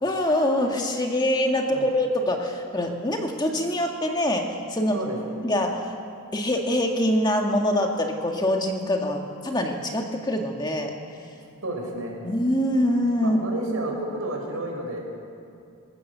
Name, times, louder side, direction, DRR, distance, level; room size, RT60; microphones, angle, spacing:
voice 1, 0.0-5.0 5.4-6.0 6.3-10.9 12.2-13.4, left 1 dB, 20° left, 2 dB, 1.9 m, -24 dB
voice 2, 11.6-12.2 13.2-15.0, right 1 dB, 75° right, 0 dB, 5.3 m, -31 dB
25.0 x 16.0 x 6.9 m, 2.6 s
head